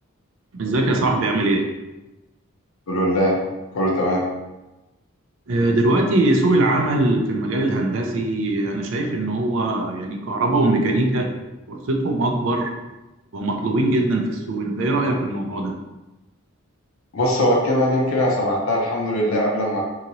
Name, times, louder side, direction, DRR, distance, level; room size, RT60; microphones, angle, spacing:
voice 1, 0.5-1.7 5.5-11.3 11.7-12.7 13.3-15.8, right 2 dB, 65° right, 3 dB, 0.5 m, -21 dB
voice 2, 2.9-3.4 3.7-4.3 17.1-19.8, equal, 80° left, -2 dB, 0.6 m, -20 dB
2.8 x 2.8 x 2.6 m, 1.0 s
head